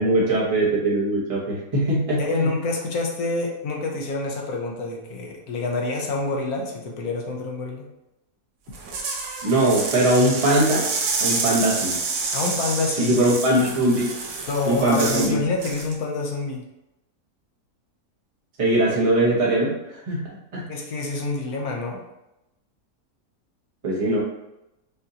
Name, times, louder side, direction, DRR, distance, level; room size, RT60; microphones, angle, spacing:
voice 1, 0.0-2.5 9.4-10.9 11.2-12.0 13.0-14.1 14.7-15.4 18.6-19.7 20.1-20.7 23.8-24.2, right 1 dB, 25° right, -5 dB, 0.9 m, -21 dB
voice 2, 2.2-7.9 12.3-13.2 14.5-16.6 20.7-22.0, left 3 dB, 70° left, 0 dB, 1.2 m, -27 dB
sound 1, 8.7-15.3 15.6-15.9, right 4 dB, 90° right, 1.3 m, -28 dB
5.6 x 2.6 x 2.8 m, 0.90 s
omnidirectional pair, 1.7 m